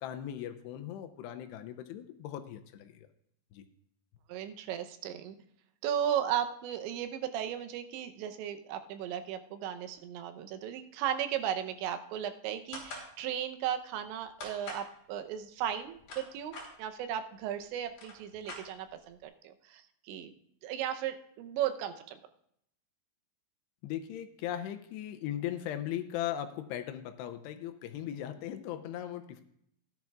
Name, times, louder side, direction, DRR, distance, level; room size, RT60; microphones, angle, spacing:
voice 1, 0.0-3.1 3.5-3.7 23.8-29.4, left 11 dB, 80° left, 7 dB, 2.7 m, -38 dB
voice 2, 4.3-5.4 5.8-20.3 20.6-22.2, right 10 dB, 90° right, 8 dB, 3.1 m, -36 dB
sound 1, 12.7-13.1 14.4-14.9 15.8-16.7 17.5-17.6 17.9-19.1, left 2 dB, 45° left, 4.4 m, -44 dB
16.5 x 10.5 x 2.4 m, 0.71 s
omnidirectional pair, 5.1 m